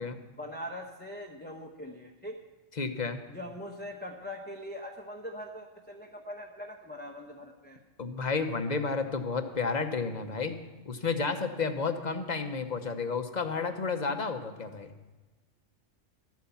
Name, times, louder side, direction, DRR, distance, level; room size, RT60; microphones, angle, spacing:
voice 1, 0.3-2.4 3.3-7.8, left 1 dB, 10° left, 0 dB, 0.9 m, -42 dB
voice 2, 2.8-3.2 8.0-10.5 10.8-14.9, left 4 dB, 40° left, 7 dB, 1.0 m, -31 dB
12.5 x 9.3 x 7.1 m, 1.2 s
omnidirectional pair, 1.3 m